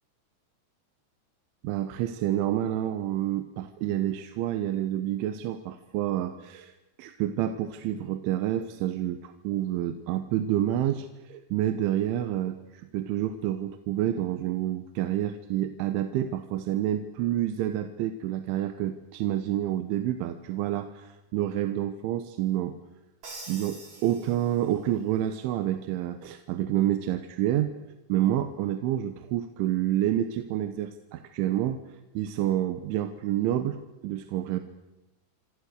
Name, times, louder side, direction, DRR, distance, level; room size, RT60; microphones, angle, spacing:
voice 1, 1.6-6.7 7.0-22.8 23.5-27.7 28.1-31.8 32.2-33.8 34.0-34.6, right 12 dB, 90° right, 9 dB, 3.6 m, -28 dB
Crash cymbal, 23.2-25.0, right 2 dB, 40° right, 7.3 m, -45 dB
26.5 x 26.5 x 6.6 m, 0.99 s
omnidirectional pair, 5.4 m